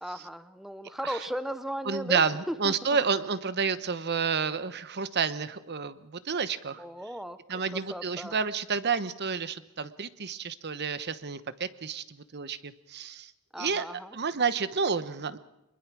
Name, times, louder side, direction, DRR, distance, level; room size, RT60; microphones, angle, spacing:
voice 1, 0.0-3.0 6.8-7.4 7.7-8.4 13.5-14.2, equal, ahead, 12 dB, 0.7 m, -36 dB
voice 2, 1.8-6.8 7.5-12.0 12.3-13.3 13.6-13.8 14.1-15.4, right 5 dB, 50° right, 14 dB, 1.0 m, -30 dB
24.0 x 22.0 x 6.2 m, 0.90 s
head